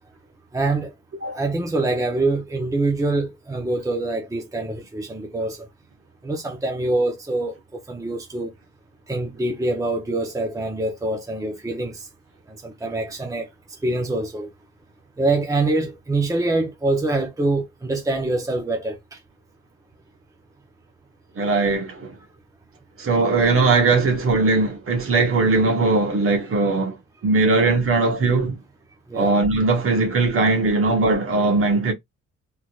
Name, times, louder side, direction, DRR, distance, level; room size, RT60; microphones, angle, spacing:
voice 1, 0.5-0.9 1.3-5.7 6.2-8.5 9.1-12.1 12.6-13.5 13.8-14.5 15.2-19.2 29.1-29.3, right 2 dB, 10° right, 0.9 m, -25 dB
voice 2, 21.4-22.1 23.0-27.0 27.2-28.6 29.1-31.9, right 3 dB, 45° right, 1.5 m, -19 dB
3.7 x 3.1 x 2.4 m
cardioid pair, 90°, 30 cm